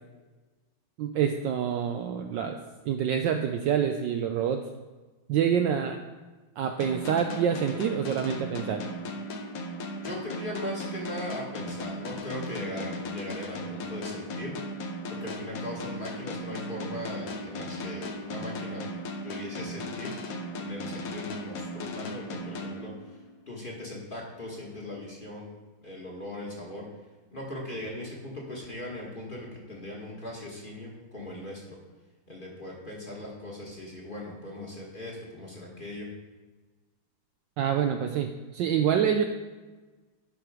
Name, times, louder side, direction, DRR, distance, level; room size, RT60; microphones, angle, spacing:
voice 1, 1.0-2.6 2.9-4.6 5.3-6.0 6.6-8.8 37.6-39.2, right 8 dB, 75° right, 5 dB, 1.1 m, -27 dB
sound 1, 6.8-23.4, left 1 dB, 60° left, 1.0 m, -37 dB
voice 2, 10.0-14.6 15.1-18.9 19.2-20.1 20.6-22.9 23.5-25.5 25.8-26.9 27.3-31.8 32.3-36.1, left 1 dB, 25° left, -3 dB, 1.5 m, -39 dB
11.5 x 4.6 x 4.8 m, 1.2 s
omnidirectional pair, 2.3 m